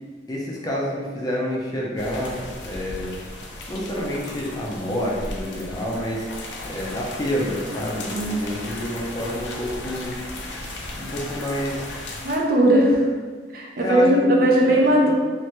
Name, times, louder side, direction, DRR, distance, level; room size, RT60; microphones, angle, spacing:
voice 1, 0.3-3.2 3.7-6.2 6.6-10.1 11.0-11.9 13.8-14.1 14.6-15.1, equal, 20° left, -4 dB, 0.5 m, -28 dB
sound 1, 2.0-12.4, left 2 dB, 85° left, 0.5 m, -36 dB
voice 2, 8.1-8.4 12.2-13.0 13.5-15.1, right 1 dB, 55° right, -2 dB, 0.5 m, -18 dB
3.2 x 2.5 x 2.9 m, 1.5 s
head